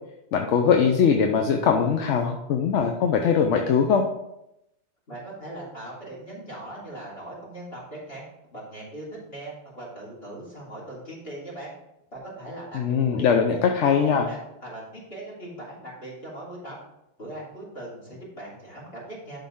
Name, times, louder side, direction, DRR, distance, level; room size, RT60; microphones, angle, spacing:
voice 1, 0.3-4.0 12.7-14.3, left 6 dB, 85° left, 3 dB, 1.0 m, -21 dB
voice 2, 5.1-8.3 8.5-11.7 12.1-13.6 14.0-16.8 17.2-19.4, right 1 dB, 60° left, -4 dB, 3.5 m, -40 dB
11.5 x 3.9 x 3.6 m, 0.86 s
omnidirectional pair, 1.2 m